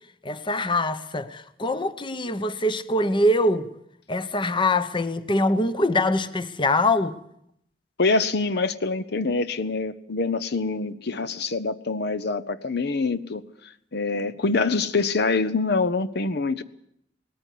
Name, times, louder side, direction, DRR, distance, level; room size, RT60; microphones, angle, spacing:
voice 1, 0.2-3.7 4.1-7.2, left 1 dB, 25° left, 0.9 m, -23 dB
voice 2, 8.0-13.4 13.9-16.6, left 3 dB, 65° left, 0.8 m, -25 dB
19.0 x 14.0 x 10.0 m
head